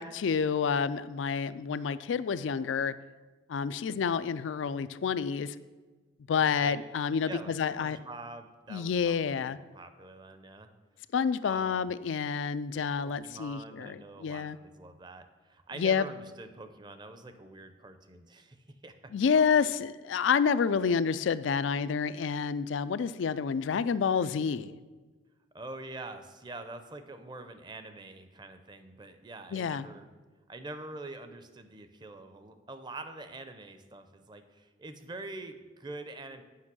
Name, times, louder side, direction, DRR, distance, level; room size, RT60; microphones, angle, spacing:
voice 1, 0.0-2.9 3.5-5.5 6.3-8.0 8.7-9.6 11.1-14.6 15.8-16.1 19.1-24.7 29.5-29.9, left 6 dB, 85° left, 15 dB, 0.4 m, -29 dB
voice 2, 6.3-6.8 7.2-10.7 11.4-11.9 13.0-18.9 19.3-19.4 25.5-30.1 30.5-36.4, right 2 dB, 25° right, 9 dB, 0.6 m, -45 dB
8.5 x 5.4 x 6.1 m, 1.3 s
head